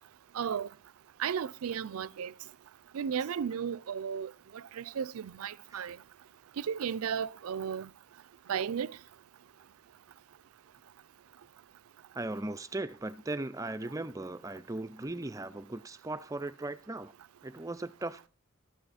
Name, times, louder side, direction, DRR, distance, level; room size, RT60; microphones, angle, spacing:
voice 1, 0.3-0.7 1.2-2.3 2.9-6.0 6.6-7.9 8.5-9.0, right 7 dB, 85° right, 0.4 m, -34 dB
voice 2, 12.1-17.1 17.4-18.3, right 2 dB, 15° right, 0.4 m, -38 dB
13.0 x 9.5 x 4.1 m
head